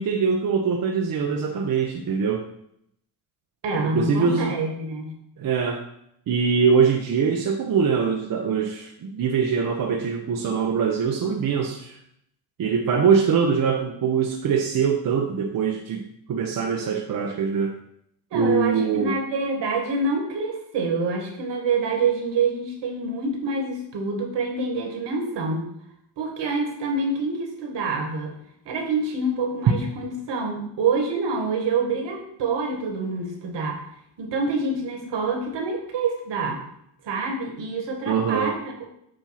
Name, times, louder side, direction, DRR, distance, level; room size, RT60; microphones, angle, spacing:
voice 1, 0.0-2.4 3.7-4.6 5.4-5.9 6.3-12.0 12.6-16.0 16.3-17.8 18.3-19.2 38.1-38.5, right 6 dB, 45° right, 1 dB, 0.8 m, -23 dB
voice 2, 3.6-5.1 18.3-25.7 26.2-28.4 28.6-33.8 34.2-36.6 37.0-38.8, right 3 dB, 65° right, 2 dB, 1.8 m, -26 dB
7.6 x 2.6 x 5.8 m, 0.74 s
supercardioid pair, 60°, 46 cm